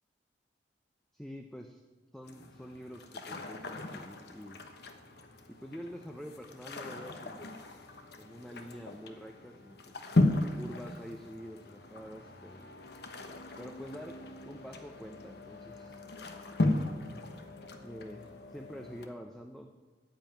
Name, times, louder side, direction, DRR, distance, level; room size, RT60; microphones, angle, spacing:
voice 1, 1.1-1.8 2.1-4.6 5.5-7.5 8.2-9.9 10.6-12.6 13.6-14.2 14.4-16.0 17.8-19.7, equal, 5° left, 4 dB, 0.6 m, -46 dB
sound 1, 2.2-19.1, left 2 dB, 60° left, 1.1 m, -36 dB
13.5 x 5.6 x 9.0 m, 1.3 s
head